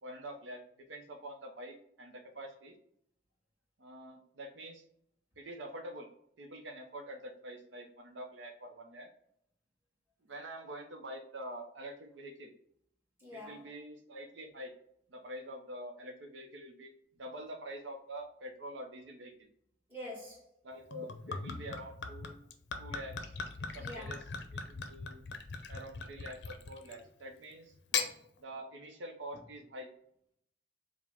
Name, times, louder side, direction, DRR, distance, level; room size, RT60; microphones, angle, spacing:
voice 1, 0.0-2.8 3.8-4.8 5.4-6.1 6.4-9.1 10.2-12.5 13.3-14.7 15.1-16.9 17.2-19.5 20.6-22.4 22.8-24.2 24.5-25.2 25.7-27.7 28.4-29.9, right 1 dB, 80° right, 0.6 m, -46 dB
voice 2, 13.2-13.7 19.9-20.5 23.7-24.3 27.9-28.0, left 1 dB, 10° right, 1.4 m, -46 dB
Gurgling / Chink clink / Liquid, 20.9-27.1 27.7-28.1, left 5 dB, 65° left, 0.5 m, -39 dB
4.9 x 2.1 x 3.5 m
head